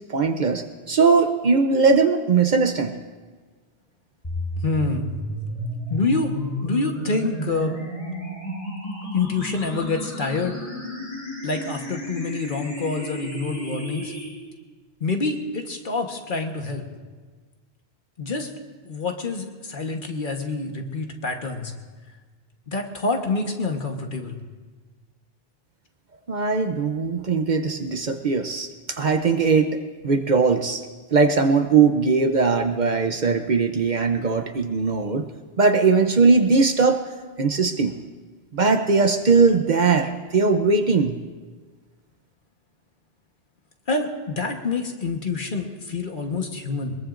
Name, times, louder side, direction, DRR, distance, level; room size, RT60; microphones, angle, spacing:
voice 1, 0.1-2.9 26.3-30.8 31.1-35.3 35.6-37.0 37.4-38.0 38.5-41.2, right 4 dB, 50° right, 7 dB, 0.8 m, -20 dB
sound 1, 4.2-14.3, equal, 35° left, 5.5 m, -32 dB
voice 2, 4.6-5.1 5.9-6.3 6.6-7.7 9.1-10.6 11.4-14.1 15.0-16.8 18.2-18.5 18.8-21.7 22.7-24.4 43.9-47.0, left 3 dB, 55° left, 3 dB, 1.4 m, -27 dB
21.5 x 21.5 x 2.5 m, 1.4 s
omnidirectional pair, 1.0 m